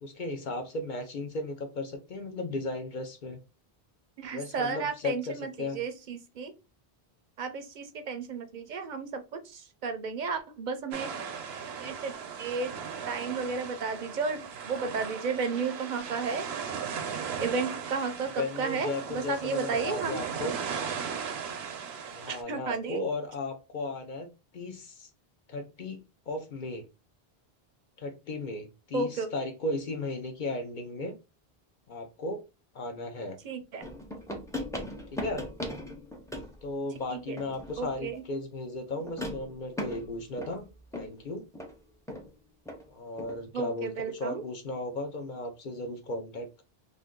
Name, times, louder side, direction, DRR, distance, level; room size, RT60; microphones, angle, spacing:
voice 1, 0.0-3.4 4.3-5.8 18.4-20.5 22.1-25.1 25.5-26.0 26.3-26.9 28.0-31.1 31.9-32.4 32.7-33.4 35.1-35.5 36.6-40.7 41.0-41.4 42.9-46.6, left 2 dB, 55° left, 0.7 m, -35 dB
voice 2, 4.2-6.5 7.4-11.1 11.8-12.1 12.4-12.7 13.1-16.5 17.4-18.9 19.1-20.2 22.3-23.0 28.9-29.3 33.4-33.9 37.1-37.4 37.8-38.2 43.5-44.4, right 4 dB, 55° right, 0.6 m, -33 dB
sound 1, 10.9-22.4, right 6 dB, 90° right, 0.9 m, -37 dB
sound 2, 33.8-36.6 37.4-38.0 39.0-41.2 41.5-41.7 42.1-42.3 42.7-42.8 43.2-43.4, left 1 dB, 5° left, 0.4 m, -38 dB
2.6 x 2.6 x 3.6 m
omnidirectional pair, 1.0 m